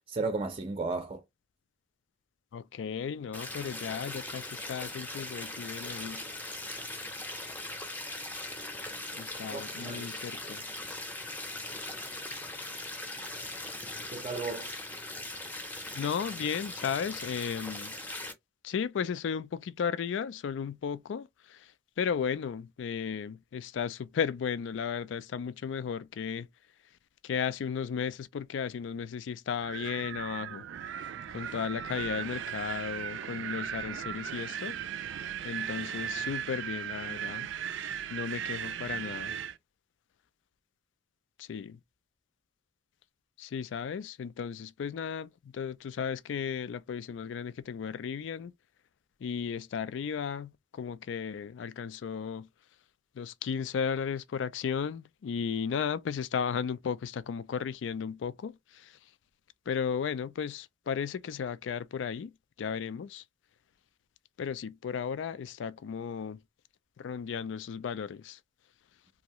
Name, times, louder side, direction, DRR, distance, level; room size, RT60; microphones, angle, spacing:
voice 1, 0.1-1.2 9.5-10.1 14.1-14.7, right 3 dB, 30° right, 0.5 m, -34 dB
voice 2, 2.5-6.2 9.1-10.6 15.9-17.9 18.6-21.7 22.0-26.5 27.2-30.6 31.3-34.8 35.4-37.5 38.1-39.3 41.4-41.8 43.4-48.5 49.2-52.5 53.2-59.0 59.7-62.3 62.6-63.2 64.4-66.4 67.0-68.4, left 7 dB, 85° left, 0.3 m, -35 dB
sound 1, 3.3-18.3, left 2 dB, 10° left, 0.6 m, -40 dB
Wind, 29.6-39.6, right 9 dB, 90° right, 0.4 m, -37 dB
2.7 x 2.5 x 2.9 m
head